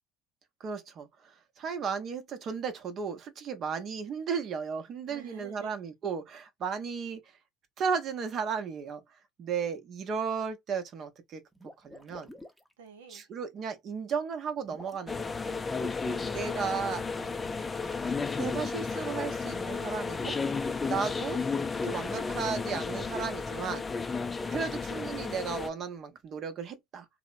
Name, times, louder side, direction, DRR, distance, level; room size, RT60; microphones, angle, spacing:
voice 1, 0.6-7.2 7.8-9.0 9.4-11.4 11.8-12.3 13.1-15.6 16.3-17.0 18.4-20.4 20.8-21.4 21.8-23.9 24.5-27.1, right 6 dB, 50° right, 0.7 m, -34 dB
voice 2, 5.1-5.7 12.8-13.3 16.0-17.4, right 7 dB, 85° right, 0.6 m, -51 dB
sound 1, 11.5-12.7 14.6-15.2 17.0-18.2 20.1-21.8, left 1 dB, ahead, 0.7 m, -49 dB
sound 2, 15.1-25.7, left 4 dB, 25° left, 0.4 m, -33 dB
2.8 x 2.0 x 2.5 m
hypercardioid pair, 70°, 0 cm